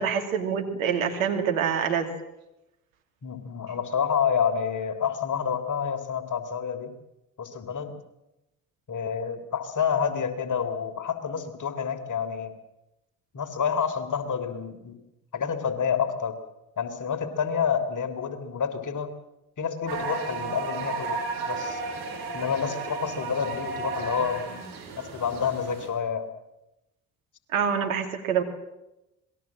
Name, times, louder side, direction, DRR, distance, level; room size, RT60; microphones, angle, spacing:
voice 1, 0.0-2.1 27.5-28.4, right 7 dB, 85° right, 4 dB, 2.7 m, -26 dB
voice 2, 3.2-6.9 7.4-7.9 8.9-12.5 13.3-14.9 15.3-16.4 16.8-19.1 19.6-21.8 22.3-24.6 25.0-26.3, left 7 dB, 50° left, 9 dB, 3.4 m, -28 dB
sound 1, 19.9-25.9, right 4 dB, 70° right, 5.3 m, -33 dB
26.5 x 20.5 x 7.5 m, 0.93 s
hypercardioid pair, 45°, 40 cm